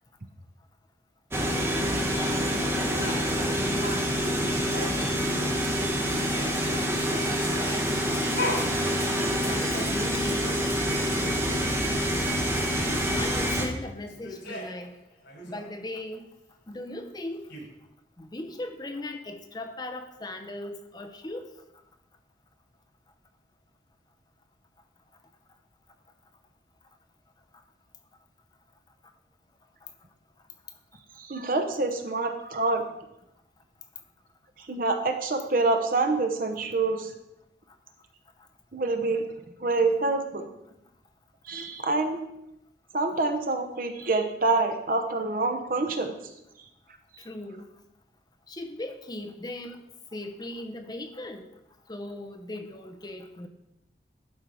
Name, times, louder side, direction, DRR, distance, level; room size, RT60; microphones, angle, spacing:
sound 1, 1.3-13.7, equal, 15° right, 1.0 m, -27 dB
sound 2, 2.9-5.5 5.8-11.7 12.1-12.2 12.3-13.3 14.0-14.9 15.2-15.6 17.2-17.3 17.5-17.6, left 1 dB, 85° left, 3.0 m, -39 dB
voice 1, 9.5-10.5 13.2-15.0 15.4-16.3 16.7-17.5 18.2-21.5 47.2-47.7 48.5-49.8 50.1-51.5 51.9-53.5, left 1 dB, 25° left, 5 dB, 0.6 m, -38 dB
voice 2, 31.2-32.9 34.6-37.1 38.7-39.3 39.6-40.5 41.4-42.2 42.9-46.2, right 3 dB, 50° right, 5 dB, 0.9 m, -26 dB
11.5 x 4.5 x 4.8 m, 0.87 s
head